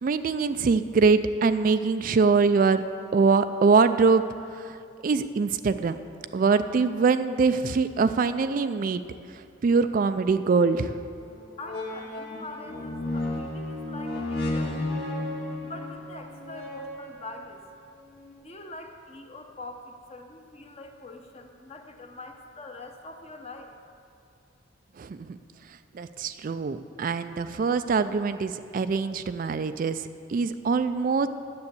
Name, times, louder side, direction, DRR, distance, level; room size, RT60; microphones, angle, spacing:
voice 1, 0.0-2.8 3.1-4.2 4.5-4.8 5.0-6.0 6.3-9.0 9.6-10.9 25.0-25.4 25.9-31.3, right 4 dB, 45° right, 11 dB, 0.3 m, -23 dB
sound 1, 11.2-11.3 11.6-17.5 18.2-18.3, left 1 dB, 55° left, 1.9 m, -33 dB
voice 2, 11.6-15.0 15.6-17.6 18.4-23.7, left 2 dB, 30° left, 4 dB, 0.9 m, -43 dB
9.7 x 7.1 x 8.1 m, 2.4 s
head